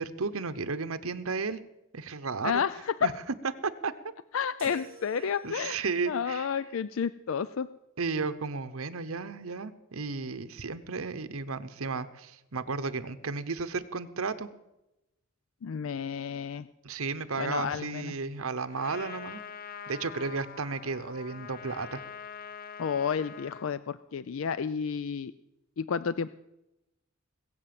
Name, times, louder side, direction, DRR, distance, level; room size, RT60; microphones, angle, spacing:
voice 1, 0.0-1.6 1.9-2.6 3.0-3.1 3.6-3.9 4.6-4.8 5.2-6.5 8.0-14.5 16.8-19.4 19.9-22.0, right 4 dB, 90° right, 12 dB, 0.9 m, -33 dB
voice 2, 2.4-3.1 4.3-7.7 15.6-16.7 17.4-18.1 22.8-25.3 25.8-26.3, left 7 dB, 70° left, 15 dB, 0.4 m, -31 dB
sound 1, 4.6-5.9, right 5 dB, 45° right, 2.4 m, -50 dB
Trumpet, 18.7-23.7, left 7 dB, 45° left, 0.8 m, -44 dB
21.0 x 7.9 x 7.7 m, 0.93 s
head